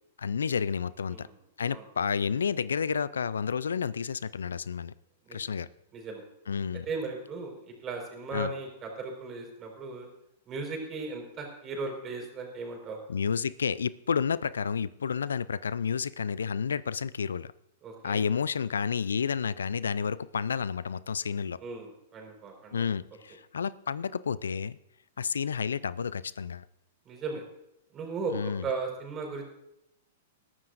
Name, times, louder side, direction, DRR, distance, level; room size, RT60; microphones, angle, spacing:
voice 1, 0.2-1.3 1.6-4.9 5.3-5.7 6.5-6.9 8.3-8.5 13.1-17.5 18.0-21.6 22.7-24.8 25.2-26.7 28.3-28.7, left 6 dB, 80° left, 20 dB, 0.3 m, -30 dB
voice 2, 5.9-6.2 6.9-10.1 10.5-13.0 17.8-18.2 21.6-22.9 27.1-27.4 27.9-29.5, right 3 dB, 30° right, 2 dB, 4.6 m, -37 dB
20.5 x 12.5 x 2.6 m, 0.81 s
hypercardioid pair, 110°, 0 cm